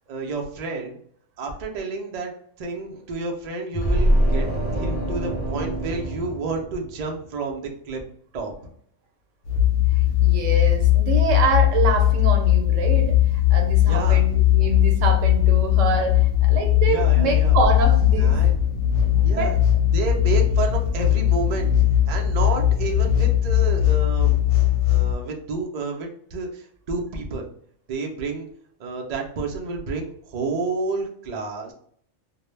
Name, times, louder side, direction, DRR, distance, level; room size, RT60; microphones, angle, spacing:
voice 1, 0.1-1.0 1.4-2.3 2.6-4.5 4.7-8.0 8.3-8.5 13.8-14.2 16.9-17.6 18.1-18.6 19.2-19.6 19.9-21.7 22.1-24.5 24.8-27.5 27.9-28.5 28.8-31.7, right 3 dB, 65° right, 1 dB, 0.4 m, -30 dB
sound 1, 3.7-7.2, equal, 30° left, 0.6 m, -24 dB
sound 2, 9.5-25.1, left 12 dB, 90° left, 1.0 m, -19 dB
voice 2, 10.0-18.4 19.4-19.6, right 4 dB, 85° right, 3 dB, 0.9 m, -26 dB
2.2 x 2.0 x 3.1 m, 0.63 s
omnidirectional pair, 1.3 m